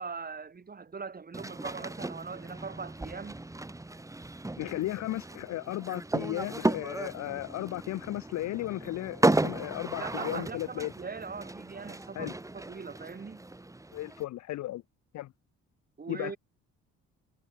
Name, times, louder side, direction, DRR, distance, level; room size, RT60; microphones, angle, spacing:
voice 1, 0.0-3.4 10.0-13.4 16.0-16.4, right 5 dB, 30° right, 2.5 m, -41 dB
sound 1, 1.3-14.2, right 2 dB, 10° right, 1.6 m, -34 dB
voice 2, 4.6-10.9 12.2-12.3 13.9-14.8 15.1-15.3 16.1-16.3, left 15 dB, 65° left, 0.6 m, -35 dB
cardioid pair, 90°, 30 cm